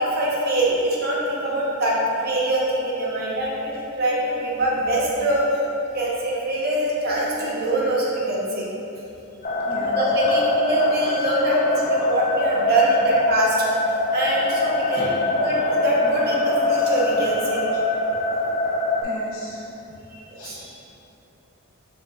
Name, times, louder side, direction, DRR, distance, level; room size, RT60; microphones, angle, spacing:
voice 1, 0.0-5.6 5.9-8.7 9.8-13.6 14.1-17.6 20.3-20.6, right 1 dB, 45° right, -4 dB, 0.7 m, -23 dB
sound 1, 9.4-19.0, left 2 dB, 35° left, 0.3 m, -24 dB
voice 2, 9.7-10.1 14.9-15.2 19.0-19.6 20.4-20.8, left 2 dB, 70° left, -5 dB, 0.8 m, -36 dB
7.1 x 2.6 x 2.3 m, 2.9 s
head